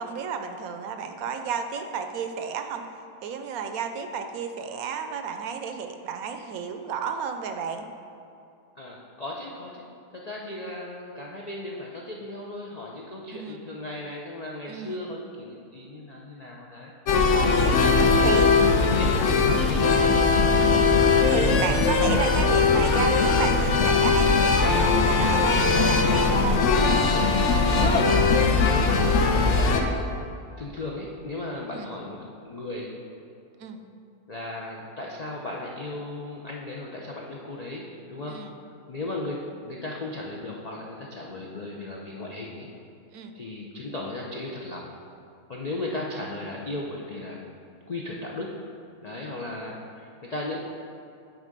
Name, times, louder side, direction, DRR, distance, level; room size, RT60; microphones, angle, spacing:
voice 1, 0.0-2.8 3.2-7.9 13.3-13.7 14.7-15.0 17.3-17.8 18.2-18.5 20.6-20.9 21.3-26.6 31.7-32.0 33.6-33.8 38.3-38.5 43.1-43.3, right 6 dB, 70° right, 6 dB, 1.0 m, -32 dB
voice 2, 8.8-9.9 10.1-20.3 27.7-28.4 29.2-30.1 30.6-32.2 32.4-32.9 34.3-38.4 38.9-42.7 43.3-44.9 45.5-47.4 47.9-48.5 49.0-50.6, left 2 dB, 85° left, -2 dB, 0.3 m, -36 dB
sound 1, 17.1-29.8, left 4 dB, 60° left, 0.8 m, -20 dB
9.0 x 3.7 x 5.2 m, 2.6 s
omnidirectional pair, 1.6 m